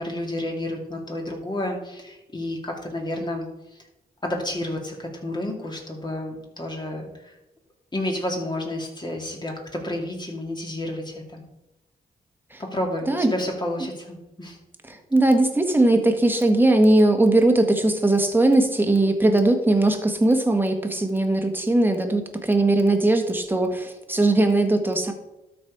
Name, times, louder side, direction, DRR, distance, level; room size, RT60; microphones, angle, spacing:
voice 1, 0.0-3.5 4.2-7.3 7.9-11.4 12.6-14.6, left 1 dB, 25° left, 0 dB, 2.5 m, -30 dB
voice 2, 14.8-25.1, right 2 dB, 10° right, 5 dB, 1.5 m, -19 dB
12.5 x 4.3 x 4.9 m, 0.97 s
cardioid pair, 70°, 16 cm